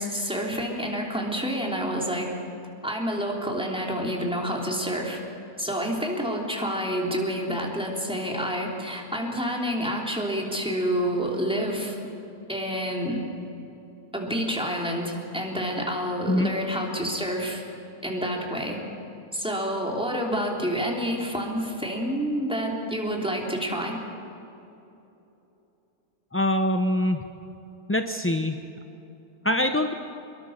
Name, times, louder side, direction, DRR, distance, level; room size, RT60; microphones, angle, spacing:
voice 1, 0.0-2.3 2.8-5.2 5.6-12.0 12.5-13.2 14.1-17.6 18.0-18.8 19.3-24.0, equal, 5° right, -1 dB, 3.3 m, -28 dB
voice 2, 26.3-27.2 27.9-28.6 29.4-29.9, left 1 dB, 20° left, 6 dB, 0.4 m, -23 dB
25.5 x 22.0 x 6.6 m, 2.9 s
omnidirectional pair, 1.6 m